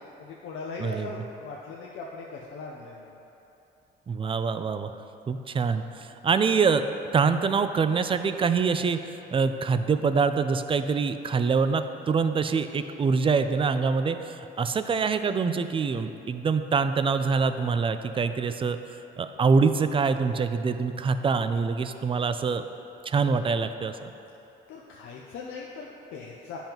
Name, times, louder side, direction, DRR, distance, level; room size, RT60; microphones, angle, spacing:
voice 1, 0.2-3.1 24.7-26.6, left 4 dB, 85° left, -2 dB, 0.6 m, -39 dB
voice 2, 0.8-1.1 4.1-4.9 5.3-6.8 7.1-18.8 19.2-22.6 23.1-24.1, right 5 dB, 25° right, 10 dB, 0.3 m, -25 dB
10.5 x 5.5 x 2.9 m, 2.9 s
cardioid pair, 90°, 20 cm